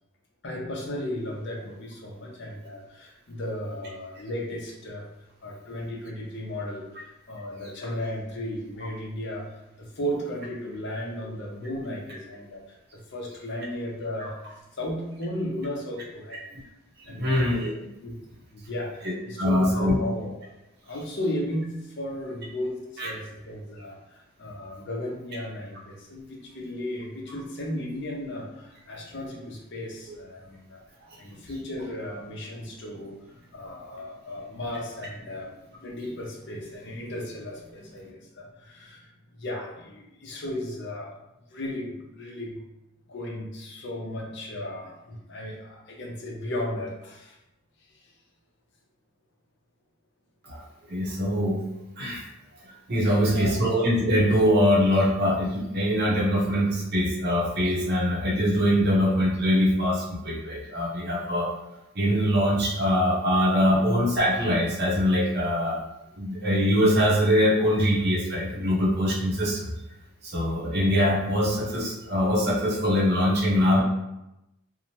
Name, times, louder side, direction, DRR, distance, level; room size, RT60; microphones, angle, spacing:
voice 1, 0.4-5.1 5.4-9.5 9.8-16.5 17.1-17.4 18.0-18.2 18.5-20.5 20.8-30.8 31.2-35.5 35.8-39.1 39.4-41.1 41.5-42.6 43.1-47.4 53.0-53.6, left 1 dB, 55° left, -1 dB, 0.6 m, -35 dB
voice 2, 17.2-17.7 19.0-19.9 23.0-23.1 50.4-51.6 52.0-52.2 52.9-61.5 61.9-65.8 66.2-69.7 70.2-73.8, equal, 50° right, -3 dB, 0.7 m, -23 dB
2.7 x 2.0 x 2.9 m, 0.91 s
head